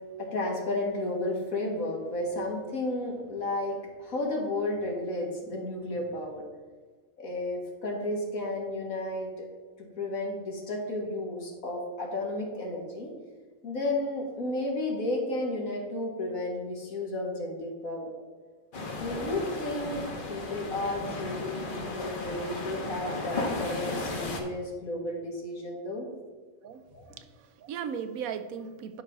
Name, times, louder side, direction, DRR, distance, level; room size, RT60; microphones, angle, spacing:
voice 1, 0.2-6.4 7.2-9.5 9.8-13.1 13.6-18.1 19.0-20.0 20.3-26.1 26.9-27.0, left 1 dB, 75° left, 0 dB, 2.2 m, -32 dB
sound 1, 18.7-24.4, left 3 dB, 40° left, 1.2 m, -35 dB
voice 2, 27.1-29.0, right 7 dB, 85° right, 10 dB, 1.1 m, -37 dB
11.0 x 5.4 x 3.6 m, 1.4 s
omnidirectional pair, 1.4 m